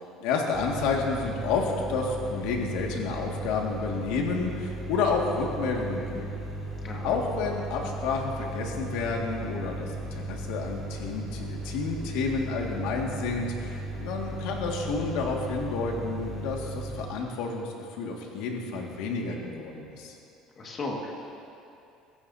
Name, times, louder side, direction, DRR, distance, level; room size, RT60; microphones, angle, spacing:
voice 1, 0.2-6.4 7.0-20.1, left 4 dB, 80° left, 0 dB, 2.0 m, -30 dB
sound 1, 0.5-17.1, right 2 dB, 10° left, 3.3 m, -36 dB
voice 2, 6.8-7.2 20.6-21.1, left 2 dB, 25° left, -1 dB, 1.9 m, -35 dB
23.5 x 14.5 x 2.8 m, 2.6 s
cardioid pair, 170°, 0 cm